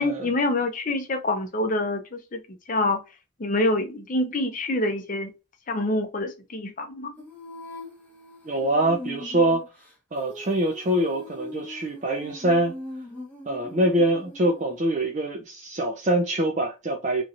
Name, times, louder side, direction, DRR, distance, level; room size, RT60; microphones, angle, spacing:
voice 1, 0.0-2.4 2.7-3.0 3.4-5.3 5.7-7.1, left 2 dB, 40° left, 0.5 m, -26 dB
Female singing, 7.2-14.8, left 1 dB, 5° left, 0.8 m, -41 dB
voice 2, 8.4-9.6 10.1-12.7 13.5-17.2, right 1 dB, 35° right, 0.5 m, -24 dB
3.0 x 2.7 x 2.4 m
head